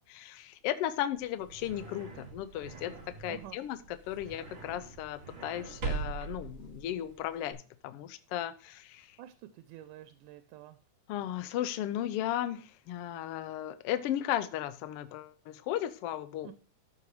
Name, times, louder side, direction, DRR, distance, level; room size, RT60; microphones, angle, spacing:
voice 1, 0.1-2.9 3.2-3.8 4.1-9.2 11.1-16.5, left 12 dB, 80° left, 11 dB, 1.3 m, -35 dB
sound 1, 1.2-7.5, right 5 dB, 40° right, 2.9 m, -42 dB
voice 2, 9.2-10.8 16.4-16.5, right 12 dB, 90° right, 10 dB, 2.2 m, -48 dB
13.5 x 6.0 x 3.2 m, 0.37 s
omnidirectional pair, 3.6 m